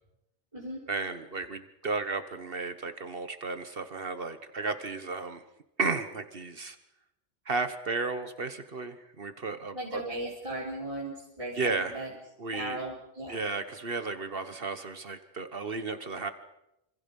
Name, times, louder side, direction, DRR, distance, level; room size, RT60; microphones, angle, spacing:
voice 1, 0.9-5.4 5.8-6.8 7.5-10.0 11.5-12.1 12.4-12.8 13.3-16.3, right 4 dB, 60° right, 10 dB, 1.4 m, -33 dB
voice 2, 9.7-12.1 12.5-13.4, right 1 dB, 30° right, -3 dB, 3.8 m, -37 dB
27.0 x 26.5 x 5.4 m, 0.88 s
omnidirectional pair, 1.1 m